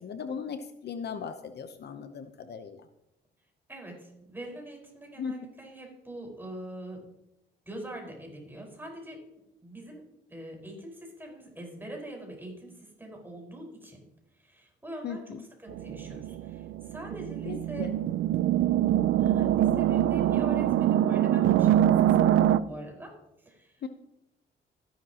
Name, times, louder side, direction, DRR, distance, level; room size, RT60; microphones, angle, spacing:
voice 1, 0.0-2.8 5.2-5.5 15.0-15.4 17.5-18.0 23.8-23.9, left 6 dB, 55° left, 9 dB, 0.8 m, -37 dB
voice 2, 3.7-7.0 7.6-9.2 9.6-14.0 14.4-17.9 19.2-23.8, right 1 dB, 10° right, 0 dB, 4.9 m, -43 dB
sound 1, 15.7-22.6, right 12 dB, 75° right, 0.5 m, -24 dB
14.0 x 11.0 x 3.0 m, 0.85 s
cardioid pair, 90°, 20 cm